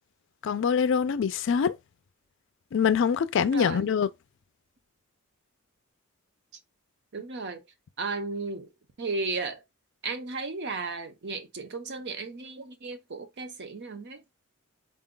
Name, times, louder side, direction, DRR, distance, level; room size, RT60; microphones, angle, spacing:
voice 1, 0.4-1.7 2.7-4.1, left 6 dB, 65° left, 0.4 m, -24 dB
voice 2, 3.4-3.9 7.1-7.6 8.0-8.7 9.0-9.6 10.0-14.2, right 3 dB, 55° right, 0.7 m, -34 dB
3.9 x 2.3 x 3.7 m
head